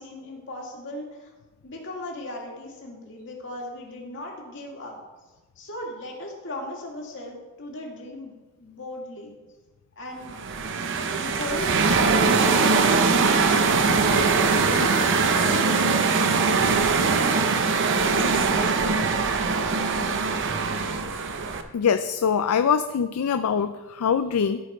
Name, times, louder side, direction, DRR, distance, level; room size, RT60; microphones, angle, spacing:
voice 1, 0.0-1.3 1.6-5.0 5.6-9.4 10.0-10.4 11.2-13.0 13.8-16.5, left 1 dB, 55° left, -1 dB, 2.1 m, -37 dB
sound 1, 10.3-21.6, right 4 dB, 55° right, 0.7 m, -22 dB
voice 2, 21.7-24.6, left 7 dB, 75° left, 10 dB, 0.4 m, -23 dB
14.0 x 5.2 x 4.2 m, 1.2 s
head